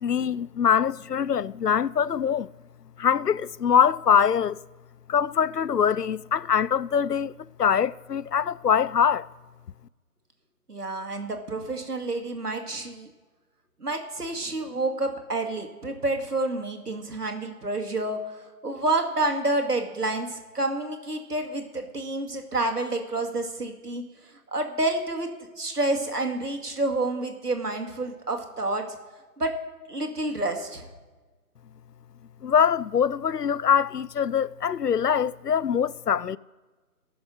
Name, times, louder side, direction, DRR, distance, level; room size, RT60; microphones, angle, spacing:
voice 1, 0.0-2.5 3.0-4.6 5.1-7.3 7.6-9.3 32.4-36.4, left 7 dB, 90° left, 0.6 m, -23 dB
voice 2, 10.7-13.1 13.8-24.1 24.5-25.3 25.6-28.9 29.4-29.5 29.9-30.9, right 2 dB, 75° right, 2.3 m, -29 dB
15.0 x 7.0 x 6.6 m
figure-of-eight pair, 155°, 46 cm